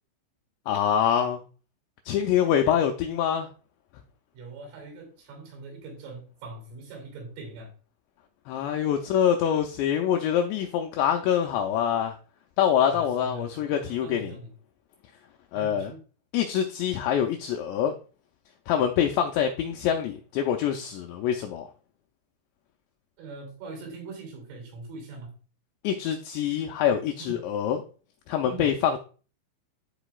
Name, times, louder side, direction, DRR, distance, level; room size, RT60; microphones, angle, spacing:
voice 1, 0.7-1.4 2.1-3.5 8.5-12.2 12.6-14.3 15.5-15.9 16.3-17.9 18.7-21.7 25.8-27.8 28.3-29.0, left 9 dB, 90° left, 4 dB, 2.5 m, -25 dB
voice 2, 4.3-7.7 12.9-14.5 15.5-16.0 23.2-25.4 27.2-27.5 28.4-28.8, right 3 dB, 90° right, 1 dB, 5.5 m, -42 dB
12.0 x 4.8 x 2.3 m, 0.38 s
omnidirectional pair, 5.7 m